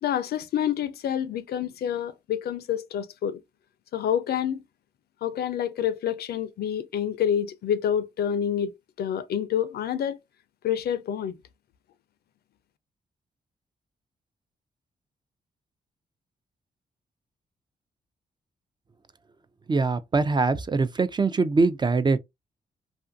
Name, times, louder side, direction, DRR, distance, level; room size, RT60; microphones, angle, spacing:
voice 1, 0.0-3.4 3.9-4.6 5.2-8.7 9.0-10.2 10.6-11.3, left 9 dB, 75° left, 0.4 m, -27 dB
voice 2, 19.7-22.2, right 4 dB, 25° right, 0.3 m, -23 dB
2.5 x 2.5 x 2.4 m
cardioid pair, 60°, 17 cm